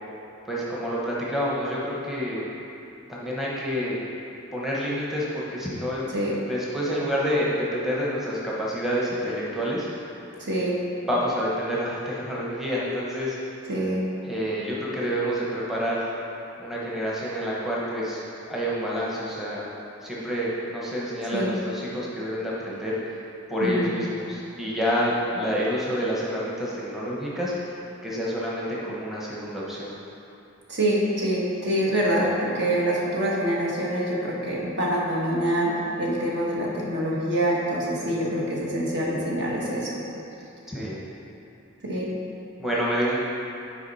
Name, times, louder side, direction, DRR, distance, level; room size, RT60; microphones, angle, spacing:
voice 1, 0.5-2.5 3.1-4.0 4.5-6.1 6.5-9.9 11.1-13.4 14.2-16.1 16.6-19.7 20.0-23.1 23.5-27.5 28.0-29.9 38.2-38.4 40.7-41.0 42.6-43.2, equal, ahead, -6 dB, 0.9 m, -28 dB
voice 2, 10.4-10.8 13.7-14.0 21.3-21.5 23.6-23.9 30.7-40.0 41.8-42.1, right 1 dB, 60° right, -4 dB, 1.4 m, -25 dB
8.7 x 5.0 x 4.1 m, 2.8 s
head